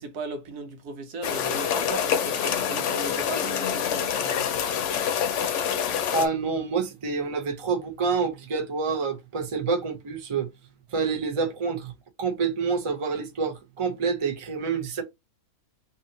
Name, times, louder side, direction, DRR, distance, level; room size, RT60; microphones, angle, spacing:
voice 1, 0.0-4.4, right 3 dB, 85° right, 1.3 m, -37 dB
sound 1, 1.2-6.3, left 8 dB, 65° left, 0.8 m, -26 dB
voice 2, 6.1-10.5 10.9-11.9 12.2-15.0, right 5 dB, 40° right, 0.4 m, -27 dB
2.8 x 2.7 x 3.9 m
omnidirectional pair, 1.6 m